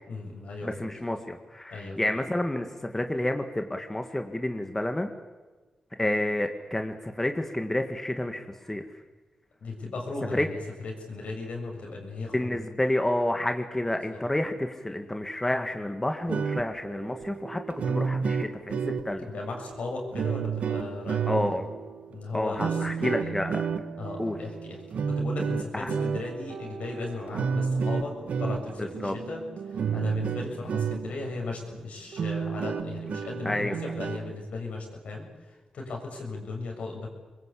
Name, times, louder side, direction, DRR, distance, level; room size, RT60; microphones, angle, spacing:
voice 1, 0.1-0.9 1.7-2.1 9.6-12.6 14.0-14.2 19.2-21.4 22.1-23.3 24.0-24.8 25.1-37.1, left 3 dB, 75° left, 1 dB, 7.0 m, -37 dB
voice 2, 0.6-5.1 6.0-8.8 10.3-10.5 12.3-17.6 17.9-19.3 21.3-21.7 22.3-23.6 24.2-24.4 25.7-25.9 28.8-29.1 33.4-33.8, left 1 dB, 15° left, 6 dB, 2.0 m, -29 dB
sound 1, 16.1-31.3 31.7-31.8 32.1-34.3, right 6 dB, 80° right, 1.3 m, -31 dB
25.0 x 22.0 x 8.6 m, 1.3 s
cardioid pair, 75°, 2 cm